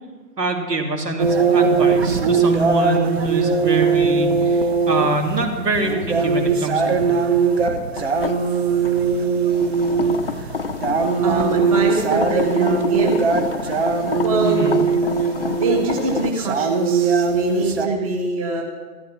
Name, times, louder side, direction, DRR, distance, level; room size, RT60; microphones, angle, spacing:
voice 1, 0.4-7.2 14.4-14.8, right 2 dB, 75° right, 2 dB, 3.1 m, -24 dB
sound 1, 1.2-17.9, right 5 dB, 40° right, 1.2 m, -20 dB
sound 2, 8.0-16.3, left 4 dB, 35° left, 0.6 m, -29 dB
voice 2, 11.2-13.2 14.2-14.8 15.6-18.6, right 3 dB, 20° right, 1 dB, 1.2 m, -23 dB
13.5 x 13.0 x 6.0 m, 1.4 s
figure-of-eight pair, 155°, 48 cm